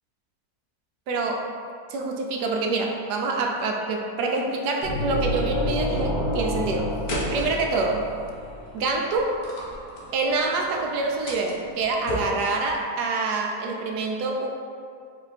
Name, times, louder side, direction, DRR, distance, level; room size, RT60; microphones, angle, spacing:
voice 1, 1.1-1.5 1.9-6.9 7.3-8.1 8.7-9.4 10.1-14.5, right 3 dB, 85° right, 1 dB, 1.2 m, -26 dB
sound 1, 4.8-8.6, left 1 dB, 35° left, 0.8 m, -28 dB
sound 2, 7.1-12.8, equal, 70° left, 1.3 m, -35 dB
4.3 x 2.7 x 4.0 m, 2.3 s
omnidirectional pair, 1.7 m